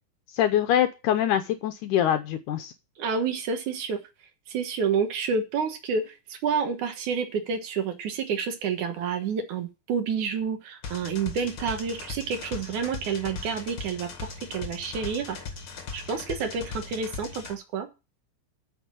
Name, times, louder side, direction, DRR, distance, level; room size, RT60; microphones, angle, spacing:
voice 1, 0.3-2.7, left 11 dB, 75° left, 8 dB, 2.2 m, -24 dB
voice 2, 3.0-4.0 4.5-15.4 15.9-17.9, right 6 dB, 70° right, 6 dB, 2.8 m, -29 dB
sound 1, 10.8-17.5, left 5 dB, 45° left, 2.3 m, -39 dB
9.0 x 6.7 x 7.5 m, 0.28 s
omnidirectional pair, 3.7 m